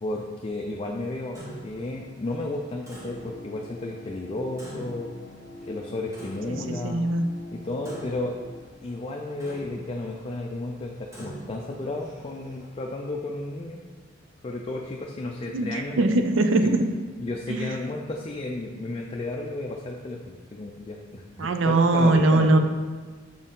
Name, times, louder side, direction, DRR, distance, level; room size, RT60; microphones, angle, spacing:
voice 1, 0.0-5.1 5.7-7.1 7.5-8.4 8.8-13.8 14.4-16.0 16.6-16.7 17.2-22.5, left 2 dB, 30° left, 0 dB, 0.4 m, -33 dB
Clock, 1.3-12.7, right 1 dB, 15° right, 1.0 m, -46 dB
sound 1, 2.9-8.6, left 2 dB, 80° left, 0.6 m, -45 dB
voice 2, 6.5-7.2 15.5-16.8 17.5-17.8 21.4-22.6, right 2 dB, 75° right, 7 dB, 0.5 m, -21 dB
6.0 x 4.3 x 3.7 m, 1.4 s
head